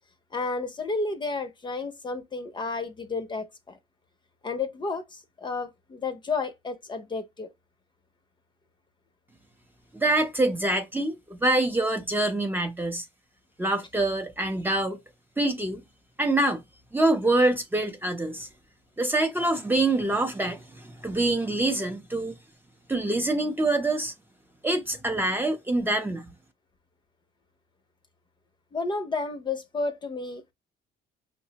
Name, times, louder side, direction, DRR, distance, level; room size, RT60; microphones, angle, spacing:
voice 1, 0.3-3.8 4.4-7.5 28.7-30.5, left 3 dB, 25° left, 0.6 m, -31 dB
voice 2, 9.9-13.1 13.6-15.0 15.4-15.8 16.2-16.6 16.9-18.5 19.0-22.4 22.9-24.1 24.6-26.3, right 2 dB, 10° right, 0.6 m, -25 dB
5.5 x 2.0 x 2.8 m
cardioid pair, 110°, 17 cm